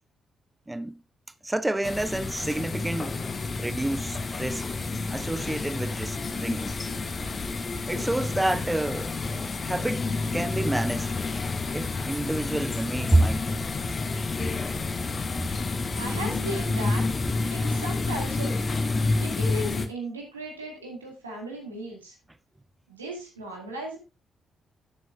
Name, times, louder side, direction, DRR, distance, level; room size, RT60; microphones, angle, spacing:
voice 1, 0.7-1.0 1.4-3.2 3.6-4.6 5.1-6.8 7.9-9.1 9.6-10.1 10.3-11.1 11.7-13.6, right 1 dB, 15° right, 0.5 m, -28 dB
sound 1, 1.8-19.9, left 3 dB, 40° left, 1.1 m, -29 dB
voice 2, 15.9-17.0 17.5-18.6 19.2-22.1 22.9-24.0, right 1 dB, 85° right, 2.1 m, -36 dB
10.5 x 7.9 x 2.5 m
figure-of-eight pair, 40°, 0 cm